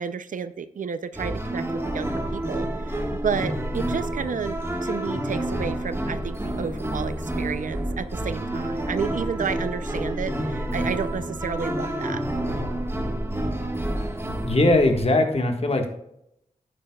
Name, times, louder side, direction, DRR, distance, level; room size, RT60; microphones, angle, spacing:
voice 1, 0.0-12.2, right 6 dB, 75° right, 13 dB, 0.5 m, -31 dB
sound 1, 1.1-15.0, right 1 dB, 20° right, 1.5 m, -29 dB
voice 2, 14.4-15.9, left 2 dB, 50° left, 4 dB, 1.6 m, -20 dB
10.5 x 8.6 x 2.3 m, 0.78 s
cardioid pair, 50°, 14 cm